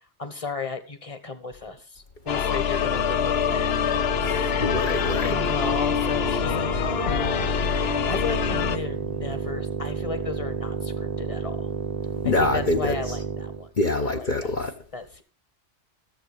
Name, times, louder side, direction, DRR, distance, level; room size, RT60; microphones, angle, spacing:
voice 1, 0.2-4.1 5.3-11.7 12.2-13.7 14.0-14.5 14.9-15.2, left 4 dB, 30° left, 1.4 m, -35 dB
sound 1, 2.3-8.8, left 8 dB, 65° left, 1.0 m, -25 dB
sound 2, 2.6-13.7, right 5 dB, 40° right, 1.0 m, -32 dB
voice 2, 4.6-5.4 12.2-13.0 13.8-14.7, left 2 dB, 45° left, 1.2 m, -24 dB
14.0 x 7.5 x 5.1 m
omnidirectional pair, 1.2 m